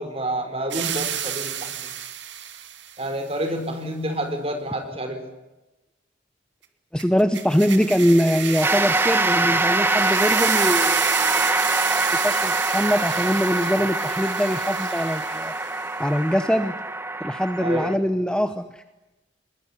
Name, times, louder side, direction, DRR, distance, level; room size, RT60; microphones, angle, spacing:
voice 1, 0.0-1.9 3.0-5.2 17.6-18.0, right 1 dB, 30° right, 7 dB, 4.4 m, -29 dB
sound 1, 0.7-3.0 7.0-15.9, right 10 dB, 70° right, 2.5 m, -31 dB
voice 2, 6.9-15.5 16.0-16.7 17.2-18.8, equal, 5° left, 9 dB, 0.9 m, -23 dB
sound 2, 8.6-17.9, right 2 dB, 10° right, 1.3 m, -24 dB
23.0 x 21.0 x 9.9 m, 1.0 s
head